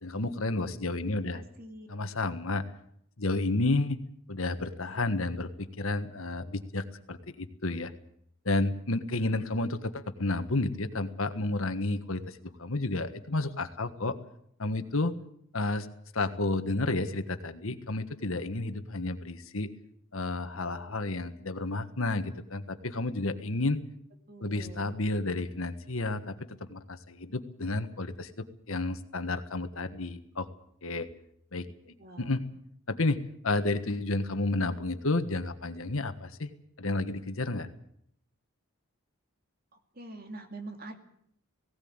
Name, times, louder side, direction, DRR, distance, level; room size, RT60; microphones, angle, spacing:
voice 1, 0.0-1.4 1.9-2.6 3.2-4.0 4.3-7.9 8.4-14.1 14.6-15.1 15.5-15.9 16.1-19.7 20.1-23.8 24.4-26.4 26.7-28.3 28.7-30.5 30.8-31.1 31.5-31.7 32.2-32.4 32.9-36.5 36.8-37.7, left 2 dB, 75° left, 9 dB, 1.5 m, -31 dB
voice 2, 1.1-1.9 24.3-25.0 32.0-32.3 39.7-41.0, right 2 dB, 45° right, 5 dB, 2.5 m, -45 dB
18.0 x 17.5 x 8.9 m, 0.70 s
head